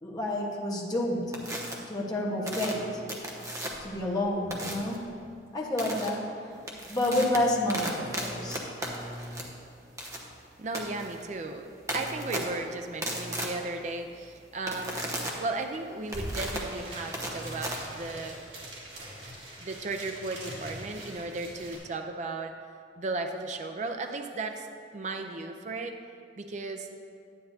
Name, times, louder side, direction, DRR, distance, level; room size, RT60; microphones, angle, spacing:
voice 1, 0.0-1.3 1.9-3.0 3.8-5.0 5.5-6.2 6.9-8.6, left 1 dB, 20° left, -3 dB, 1.2 m, -29 dB
sound 1, 1.3-1.7 2.5-3.9 4.5-5.0 5.8-6.1 6.5-18.4, right 1 dB, 20° right, 0.9 m, -36 dB
voice 2, 10.6-15.0 15.4-18.6 19.6-22.6 23.0-26.0 26.4-26.9, right 3 dB, 40° right, 5 dB, 0.4 m, -35 dB
sound 2, 15.7-15.8 16.0-21.8, right 1 dB, 70° right, 2.4 m, -42 dB
10.0 x 9.7 x 2.7 m, 2.4 s
head